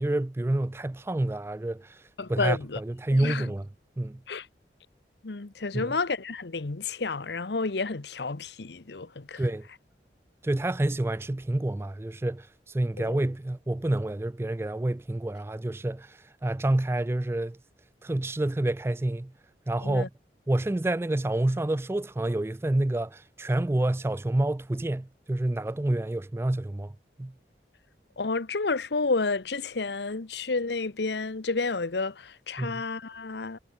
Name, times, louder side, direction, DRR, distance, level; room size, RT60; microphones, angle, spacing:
voice 1, 0.0-2.0 2.3-3.7 4.0-4.2 5.7-6.0 9.4-9.7 10.4-17.6 18.0-19.3 19.7-20.1 20.5-26.9 27.2-27.3 32.6-32.8, right 1 dB, 15° right, 0.3 m, -28 dB
voice 2, 2.2-2.8 3.1-3.5 4.3-4.5 5.2-9.5 13.0-13.2 19.8-20.1 28.2-33.6, left 3 dB, 75° left, 0.9 m, -30 dB
head